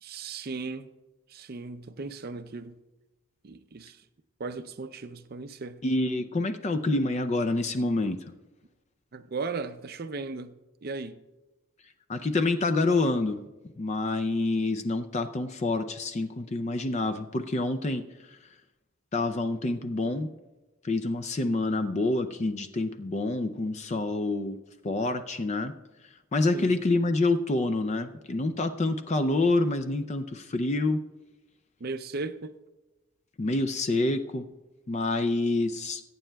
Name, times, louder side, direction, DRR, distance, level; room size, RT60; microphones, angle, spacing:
voice 1, 0.0-0.9 1.3-2.8 3.4-4.0 4.4-5.8 9.1-11.2 26.5-26.8 31.8-32.6, right 3 dB, 45° right, 0.5 m, -37 dB
voice 2, 5.8-8.2 12.1-13.4 13.8-18.0 18.3-18.4 19.1-20.3 20.8-24.6 24.8-25.7 26.3-31.0 33.4-34.5 34.9-36.0, left 2 dB, 30° left, 0.4 m, -27 dB
21.5 x 9.0 x 2.3 m
head